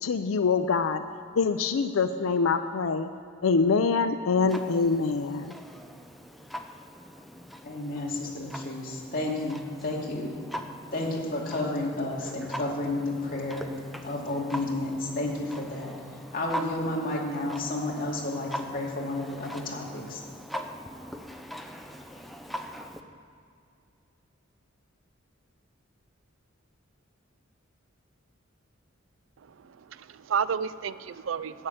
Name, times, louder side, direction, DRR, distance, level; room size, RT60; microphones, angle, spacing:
voice 1, 0.0-1.0 1.4-3.1 3.4-5.5, left 4 dB, 85° left, 10 dB, 0.5 m, -25 dB
Clock, 4.5-23.0, equal, ahead, 0.6 m, -42 dB
voice 2, 7.6-10.3 10.9-13.7 14.0-20.2, left 2 dB, 45° left, -3 dB, 2.6 m, -31 dB
voice 3, 29.4-31.7, right 7 dB, 70° right, 16 dB, 0.4 m, -32 dB
11.0 x 7.6 x 8.7 m, 2.4 s
head